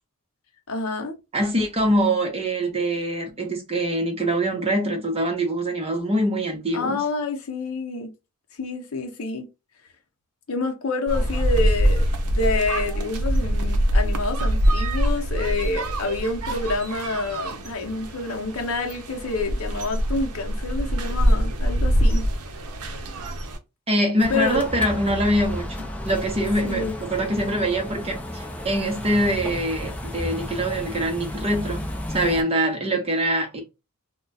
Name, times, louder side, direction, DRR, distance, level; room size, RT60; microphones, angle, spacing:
voice 1, 0.7-1.2 6.7-8.1 8.6-9.5 10.5-22.3 24.3-24.6 26.6-27.0, left 3 dB, 70° left, 0.7 m, -28 dB
voice 2, 1.3-7.0 23.9-31.8 32.1-33.6, right 1 dB, 30° right, 0.8 m, -24 dB
sound 1, 11.1-23.6, equal, 80° right, 0.6 m, -24 dB
sound 2, 24.2-32.4, left 1 dB, 5° left, 0.5 m, -33 dB
2.3 x 2.2 x 3.9 m
head